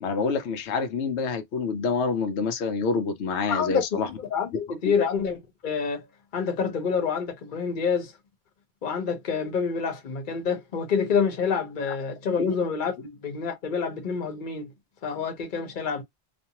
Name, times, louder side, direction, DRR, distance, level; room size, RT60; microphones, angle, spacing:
voice 1, 0.0-4.1 4.8-4.9 12.4-12.6, left 4 dB, 75° left, 0.9 m, -27 dB
voice 2, 3.5-6.1 6.3-8.1 8.8-14.7 15.0-16.0, left 6 dB, 50° left, 1.0 m, -27 dB
2.5 x 2.3 x 2.9 m
omnidirectional pair, 1.2 m